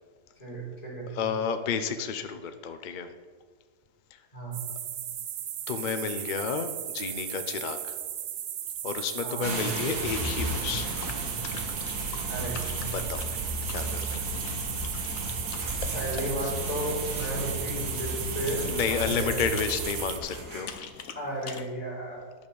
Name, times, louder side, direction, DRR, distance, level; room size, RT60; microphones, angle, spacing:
voice 1, 0.3-1.2 4.3-4.6 9.2-9.6 12.3-12.6 15.9-18.7 19.0-19.4 21.1-22.2, equal, 25° left, -6 dB, 4.2 m, -33 dB
voice 2, 1.1-3.1 4.1-4.2 5.7-7.9 8.8-10.9 12.9-13.3 13.7-14.3 18.6-20.7, left 6 dB, 50° left, 8 dB, 0.6 m, -31 dB
sound 1, 4.5-20.2, right 10 dB, 60° right, 0.7 m, -36 dB
sound 2, 9.4-20.8, right 2 dB, 80° right, 2.5 m, -34 dB
sound 3, 10.7-21.6, left 7 dB, 65° left, 1.2 m, -45 dB
11.0 x 6.4 x 7.0 m, 1.5 s
omnidirectional pair, 1.6 m